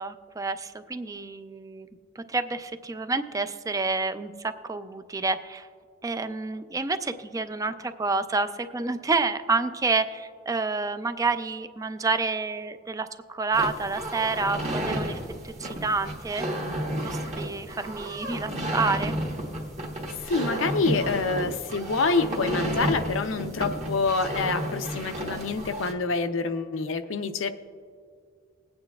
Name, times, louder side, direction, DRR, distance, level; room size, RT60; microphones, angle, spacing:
voice 1, 0.0-1.9 2.2-5.7 6.0-15.2 15.4-16.4 17.0-19.1, right 3 dB, 15° right, 10 dB, 0.4 m, -29 dB
sound 1, 13.5-25.9, right 1 dB, 35° right, 1.2 m, -32 dB
voice 2, 20.3-27.5, left 4 dB, 80° left, 8 dB, 0.6 m, -27 dB
20.5 x 8.8 x 2.3 m, 2.1 s
head